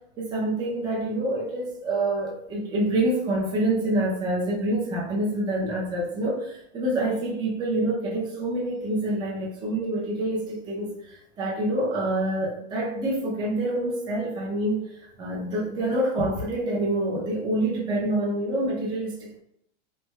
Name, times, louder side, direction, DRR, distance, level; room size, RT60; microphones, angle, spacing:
voice 1, 0.2-14.8 15.2-19.4, right 1 dB, 10° right, -4 dB, 0.5 m, -27 dB
3.2 x 2.3 x 3.1 m, 0.72 s
supercardioid pair, 155°, 35 cm